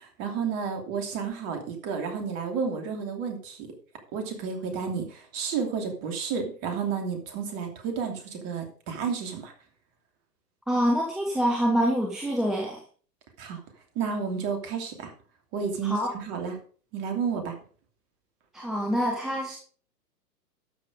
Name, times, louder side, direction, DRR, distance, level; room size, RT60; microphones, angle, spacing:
voice 1, 0.0-3.7 4.1-9.5 13.4-13.6 13.9-15.1 15.5-16.6 16.9-17.6, right 6 dB, 30° right, 5 dB, 2.8 m, -31 dB
voice 2, 10.7-12.8 15.8-16.1 18.5-19.6, equal, ahead, -1 dB, 0.5 m, -26 dB
12.5 x 6.6 x 5.2 m, 0.42 s
figure-of-eight pair, 120°, 49 cm